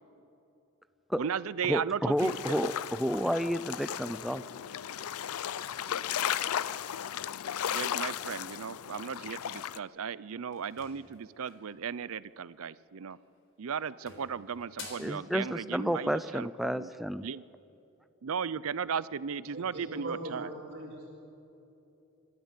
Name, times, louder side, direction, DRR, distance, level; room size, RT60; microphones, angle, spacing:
voice 1, 1.2-2.4 7.7-13.2 13.6-16.9 17.2-17.4 18.2-20.5, right 7 dB, 75° right, 18 dB, 0.5 m, -36 dB
voice 2, 1.7-4.4 15.0-17.3, equal, ahead, 12 dB, 0.4 m, -31 dB
sound 1, 2.2-9.8, left 9 dB, 90° left, 0.5 m, -35 dB
sound 2, 10.5-11.7 13.0-13.4 13.7-15.2, left 4 dB, 60° left, 4.0 m, -48 dB
voice 3, 19.5-21.0, right 1 dB, 50° right, -5 dB, 2.7 m, -40 dB
26.5 x 13.0 x 8.2 m, 2.9 s
head